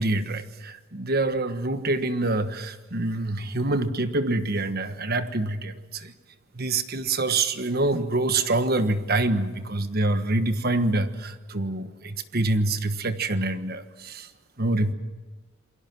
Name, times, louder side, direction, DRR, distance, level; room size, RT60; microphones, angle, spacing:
voice 1, 0.0-6.1 6.5-14.3 14.6-14.9, right 2 dB, 50° right, 9 dB, 1.4 m, -26 dB
28.5 x 21.5 x 6.1 m, 1.3 s
head